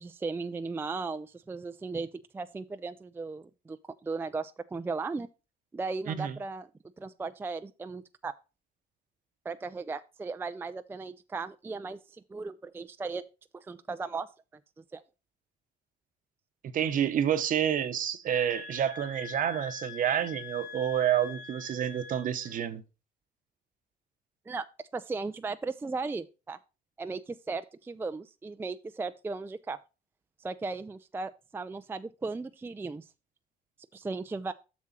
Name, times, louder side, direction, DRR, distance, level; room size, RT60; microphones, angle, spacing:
voice 1, 0.0-2.1 2.3-3.8 4.0-5.3 5.7-6.7 7.0-8.3 9.4-13.2 13.5-14.3 14.9-15.0 24.5-24.7 24.9-26.6 27.0-29.8 30.4-33.1 33.9-34.5, right 4 dB, 15° right, 0.4 m, -36 dB
voice 2, 16.7-22.8, right 9 dB, 55° right, 0.9 m, -29 dB
sound 1, 18.2-22.5, left 6 dB, 65° left, 3.0 m, -44 dB
7.4 x 6.2 x 4.2 m
cardioid pair, 110°, 17 cm